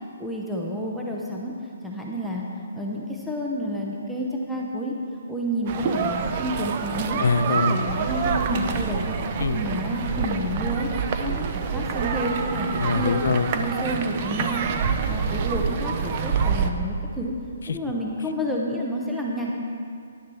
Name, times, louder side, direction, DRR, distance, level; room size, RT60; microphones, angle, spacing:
voice 1, 0.2-1.5 1.8-2.4 2.7-4.9 5.3-7.2 7.7-9.2 9.5-10.9 11.2-13.2 13.5-17.3 17.7-19.5, equal, ahead, -4 dB, 0.8 m, -29 dB
sound 1, 5.7-16.7, right 6 dB, 35° right, 0.6 m, -27 dB
voice 2, 7.2-7.8 9.4-9.6 12.7-13.5 17.7-17.8, left 4 dB, 75° left, 10 dB, 0.6 m, -23 dB
10.5 x 6.6 x 7.0 m, 2.4 s
hypercardioid pair, 160°, 0 cm